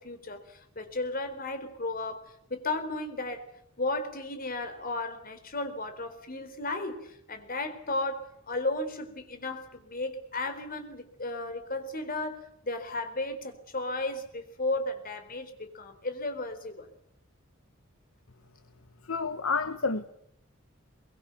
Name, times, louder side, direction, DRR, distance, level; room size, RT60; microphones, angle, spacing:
voice 1, 0.0-16.9, left 2 dB, 45° left, 4.0 m, -34 dB
voice 2, 19.1-20.1, left 4 dB, 80° left, 1.1 m, -29 dB
23.5 x 21.5 x 9.3 m
head